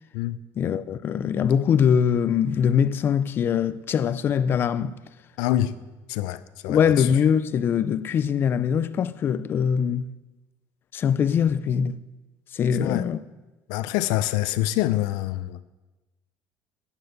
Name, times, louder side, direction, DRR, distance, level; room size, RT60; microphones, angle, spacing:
voice 1, 0.6-5.0 6.6-10.1 10.9-12.0 12.5-13.2, left 7 dB, 30° left, 0.4 m, -22 dB
voice 2, 5.4-5.8 6.1-7.1 12.8-13.1 13.7-15.6, left 14 dB, 80° left, 0.6 m, -26 dB
10.0 x 9.0 x 8.1 m
cardioid pair, 170°, 7 cm